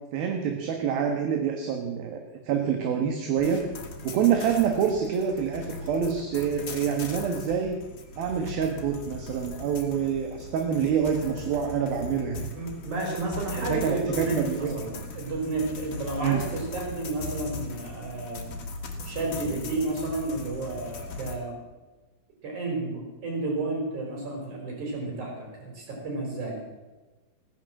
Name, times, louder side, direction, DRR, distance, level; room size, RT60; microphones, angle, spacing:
voice 1, 0.1-2.2 2.5-3.6 4.0-7.8 8.2-12.4 13.6-14.8 16.2-16.4, right 7 dB, 75° right, 4 dB, 3.1 m, -26 dB
sound 1, 3.4-21.4, left 3 dB, 45° left, 2.3 m, -39 dB
voice 2, 12.5-18.5 19.0-21.6 22.4-26.6, right 2 dB, 50° right, 0 dB, 5.9 m, -32 dB
16.5 x 11.0 x 7.6 m, 1.1 s
omnidirectional pair, 4.4 m